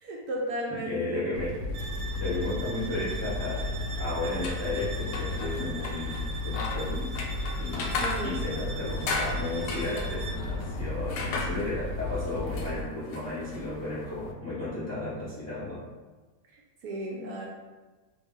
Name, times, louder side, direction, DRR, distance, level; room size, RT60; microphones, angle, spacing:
voice 1, 0.0-1.3 7.7-8.6 16.8-17.5, right 1 dB, 70° right, -1 dB, 1.0 m, -35 dB
voice 2, 0.7-1.6 2.0-3.7 4.0-7.2 7.6-15.8, left 2 dB, 15° left, -9 dB, 0.5 m, -34 dB
sound 1, 1.3-12.8, left 2 dB, 70° left, 0.9 m, -34 dB
sound 2, 1.7-10.5, right 4 dB, 90° right, 1.3 m, -42 dB
sound 3, 4.3-14.3, left 3 dB, 85° left, 1.2 m, -37 dB
3.0 x 2.6 x 3.6 m, 1.3 s
omnidirectional pair, 1.9 m